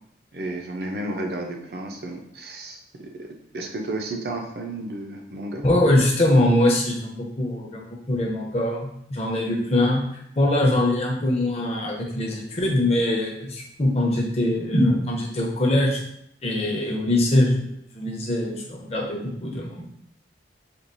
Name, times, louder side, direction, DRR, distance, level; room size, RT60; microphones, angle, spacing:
voice 1, 0.3-3.3 3.5-5.6, right 2 dB, 60° right, 2 dB, 0.6 m, -32 dB
voice 2, 5.6-16.0 16.4-19.9, left 1 dB, 35° left, -1 dB, 0.6 m, -22 dB
4.4 x 2.4 x 2.6 m, 0.73 s
head